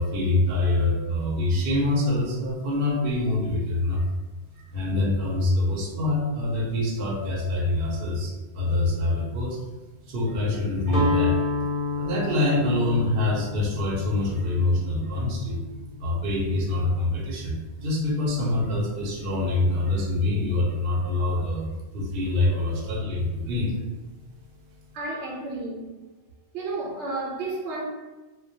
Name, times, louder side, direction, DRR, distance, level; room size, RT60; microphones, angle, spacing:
voice 1, 0.0-4.1 4.7-9.6 10.1-11.4 11.9-15.6 16.0-21.7 21.9-23.7, left 2 dB, 60° right, -3 dB, 0.8 m, -25 dB
Guitar, 10.9-16.9, left 3 dB, 60° left, 0.7 m, -30 dB
voice 2, 22.5-22.9 24.9-25.9 26.5-27.8, right 2 dB, 90° right, -2 dB, 0.9 m, -32 dB
2.2 x 2.1 x 2.6 m, 1.2 s
omnidirectional pair, 1.1 m